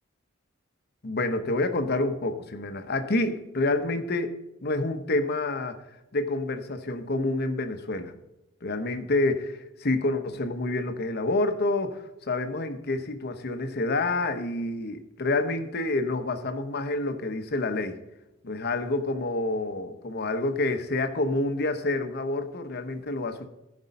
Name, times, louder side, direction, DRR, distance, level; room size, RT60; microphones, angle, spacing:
voice 1, 1.0-4.3 4.6-5.8 6.1-8.1 8.6-18.0 18.4-23.5, left 2 dB, 55° left, 8 dB, 1.0 m, -28 dB
14.0 x 5.3 x 5.4 m, 0.94 s
head